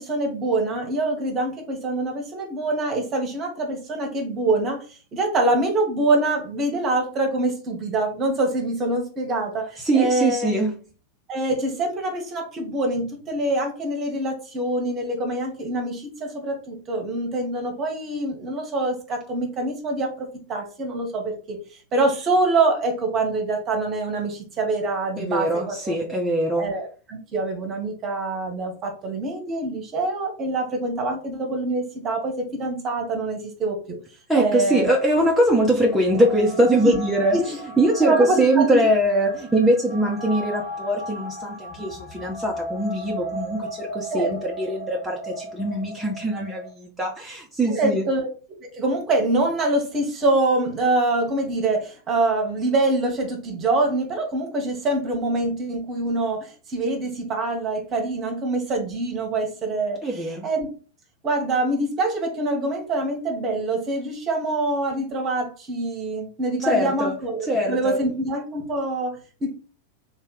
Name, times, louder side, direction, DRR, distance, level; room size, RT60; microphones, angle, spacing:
voice 1, 0.0-10.6 11.3-21.6 21.9-25.9 26.6-34.0 34.3-34.9 36.8-37.0 37.3-37.4 38.0-38.8 44.1-44.3 47.6-48.3 48.7-60.7 61.2-69.5, right 2 dB, 30° right, 2 dB, 1.3 m, -25 dB
voice 2, 9.8-10.8 25.2-26.7 34.3-37.4 37.8-48.1 60.0-60.5 66.7-67.2 67.5-68.0, right 1 dB, 5° right, -3 dB, 0.9 m, -22 dB
sound 1, 35.0-46.7, right 1 dB, 55° left, 2.0 m, -36 dB
3.4 x 2.8 x 3.9 m, 0.37 s
figure-of-eight pair, 90°, 0 cm